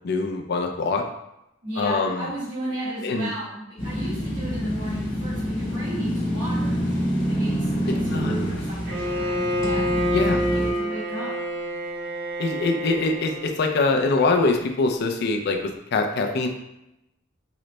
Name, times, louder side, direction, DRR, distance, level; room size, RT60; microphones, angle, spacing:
voice 1, 0.0-1.0 1.8-2.3 3.0-3.3 7.9-8.5 10.1-10.4 12.4-16.5, left 3 dB, 55° left, 4 dB, 0.4 m, -24 dB
voice 2, 1.6-6.8 7.3-11.3, right 1 dB, 85° right, -12 dB, 1.5 m, -35 dB
sound 1, 3.8-10.7, equal, 75° left, 1.0 m, -27 dB
Bowed string instrument, 8.9-13.6, equal, 55° right, 0.7 m, -27 dB
3.8 x 2.1 x 3.1 m, 0.87 s
head